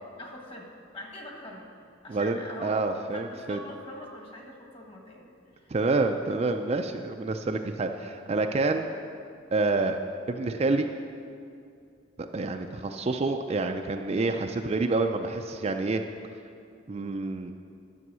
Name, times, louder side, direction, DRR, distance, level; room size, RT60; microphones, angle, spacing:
voice 1, 0.2-1.7 2.0-2.8 3.1-5.7, left 1 dB, 30° left, 1 dB, 1.4 m, -43 dB
voice 2, 2.1-3.6 5.7-8.9 9.5-10.0 10.3-10.9 12.3-16.0 16.9-17.5, right 3 dB, 35° right, 5 dB, 0.4 m, -28 dB
11.0 x 7.1 x 6.1 m, 2.4 s
head